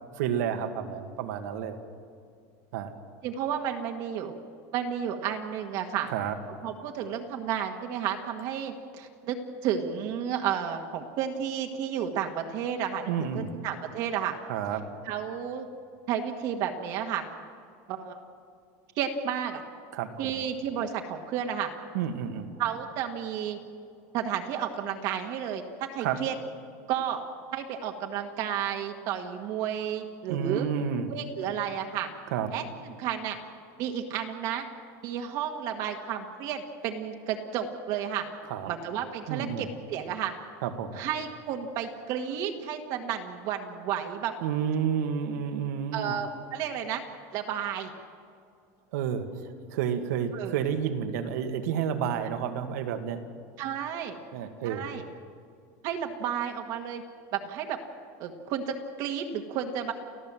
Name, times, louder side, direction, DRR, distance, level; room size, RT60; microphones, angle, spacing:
voice 1, 0.1-1.8 2.7-2.9 6.1-6.4 13.1-13.5 14.5-14.8 19.9-20.4 21.9-22.5 26.0-26.2 30.3-31.1 32.3-32.5 38.5-38.7 39.3-39.7 40.6-41.0 44.4-46.2 48.9-49.4 49.7-53.2 54.3-54.9, right 8 dB, 80° right, 7 dB, 2.0 m, -30 dB
voice 2, 3.2-4.3 4.7-6.1 6.6-9.4 9.6-14.3 15.1-15.7 16.1-17.2 17.9-18.2 19.0-19.6 20.2-21.7 22.6-23.6 24.1-25.6 25.9-26.3 26.9-27.2 27.5-30.7 31.1-32.1 32.5-32.6 33.0-33.4 33.8-34.6 35.0-38.2 38.7-40.3 40.9-44.3 45.9-47.0 47.3-47.9 50.3-50.5 53.6-54.2 54.6-55.0 55.8-57.0 57.3-57.8 58.2-59.9, right 9 dB, 45° right, 3 dB, 1.5 m, -32 dB
30.0 x 14.5 x 7.5 m, 2.3 s
cardioid pair, 180°, 9 cm